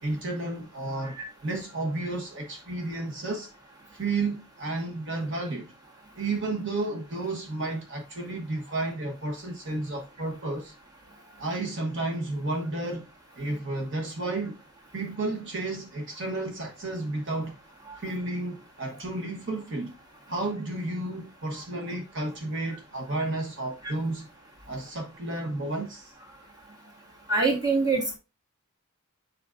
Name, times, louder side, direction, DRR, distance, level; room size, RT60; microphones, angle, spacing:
voice 1, 0.0-3.5 3.9-5.7 6.2-10.7 11.4-13.1 13.4-14.6 14.9-17.6 18.0-19.9 20.3-24.3 24.6-26.1, right 2 dB, 55° right, 1.2 m, -32 dB
voice 2, 27.3-28.1, right 3 dB, 15° right, 2.0 m, -24 dB
7.3 x 5.2 x 2.5 m
head